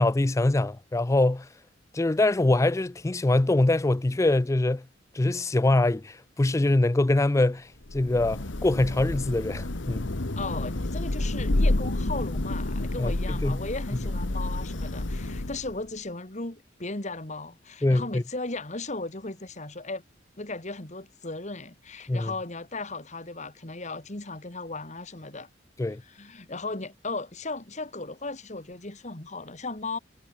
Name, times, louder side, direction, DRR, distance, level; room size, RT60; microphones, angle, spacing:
voice 1, 0.0-1.5 1.9-4.8 5.1-10.1 13.0-13.6 17.8-18.2 22.1-22.3 25.8-26.0, left 2 dB, 15° left, 0.4 m, -24 dB
Thunder / Rain, 7.8-15.9, left 1 dB, 75° left, 1.5 m, -29 dB
voice 2, 10.4-20.0 20.4-25.5 26.1-30.0, left 3 dB, 40° left, 2.3 m, -36 dB
head